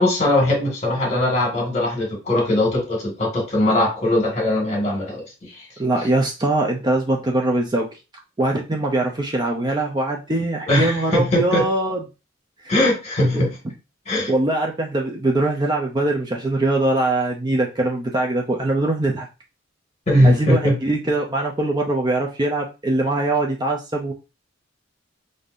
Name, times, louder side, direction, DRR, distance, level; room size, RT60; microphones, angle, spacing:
voice 1, 0.0-5.6 10.7-11.6 12.7-13.6 14.1-14.3 20.1-20.8, left 1 dB, 35° left, 0 dB, 1.6 m, -20 dB
voice 2, 5.8-7.9 8.4-12.0 12.6-12.7 14.3-19.3 20.2-24.1, right 2 dB, 20° right, 1 dB, 0.5 m, -22 dB
5.0 x 2.7 x 2.5 m, 0.29 s
head